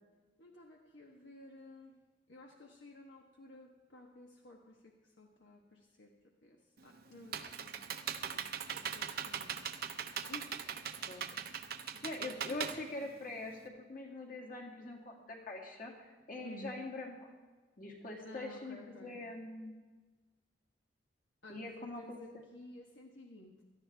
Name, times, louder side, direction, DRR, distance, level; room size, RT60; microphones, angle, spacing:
voice 1, 0.4-1.9 2.3-10.7 11.3-12.0 12.5-12.6 16.4-16.7 18.2-19.2 21.4-23.6, left 2 dB, 75° left, 0 dB, 1.3 m, -54 dB
Computer keyboard, 6.8-13.6, right 8 dB, 55° right, 0.8 m, -40 dB
voice 2, 12.0-17.3 17.8-19.8 21.5-22.2, left 2 dB, 50° left, -1 dB, 2.4 m, -44 dB
17.5 x 13.0 x 3.4 m, 1.3 s
head